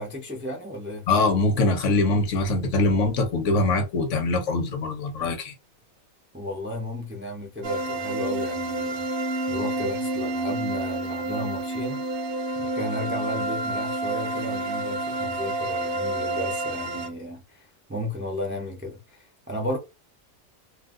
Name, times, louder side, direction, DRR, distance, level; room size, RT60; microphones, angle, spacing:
voice 1, 0.0-1.1 6.3-12.0 12.6-19.8, left 1 dB, 20° right, 0.3 m, -34 dB
voice 2, 1.1-5.5, left 2 dB, 60° left, 1.0 m, -23 dB
sound 1, 7.6-17.1, right 2 dB, 60° right, 0.6 m, -29 dB
2.7 x 2.2 x 3.6 m
omnidirectional pair, 1.5 m